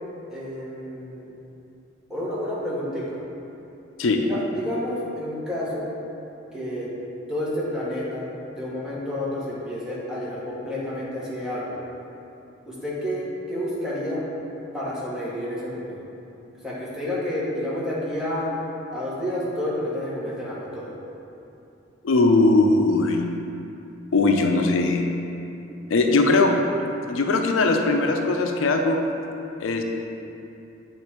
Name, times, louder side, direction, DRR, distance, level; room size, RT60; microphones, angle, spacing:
voice 1, 0.3-1.3 2.1-3.2 4.3-5.9 6.5-6.9 7.3-8.3 8.6-11.8 12.6-14.3 14.7-16.0 16.6-18.5 18.9-20.9, left 1 dB, 5° right, -8 dB, 1.2 m, -30 dB
voice 2, 22.0-23.2 24.1-25.0 25.9-26.5 27.1-29.0 29.6-29.8, left 3 dB, 80° left, 3 dB, 0.5 m, -20 dB
7.9 x 3.2 x 4.3 m, 2.8 s
head